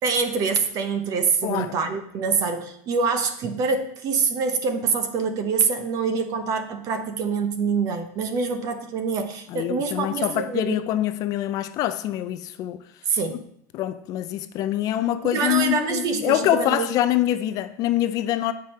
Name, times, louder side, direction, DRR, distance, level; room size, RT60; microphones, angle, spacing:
voice 1, 0.0-10.8 13.1-13.4 15.2-16.9, right 5 dB, 40° right, 0.8 m, -25 dB
voice 2, 1.4-1.7 9.5-12.8 13.3-13.4 13.7-18.5, left 13 dB, 40° left, 0.4 m, -25 dB
7.5 x 4.8 x 4.2 m
supercardioid pair, 140°, 9 cm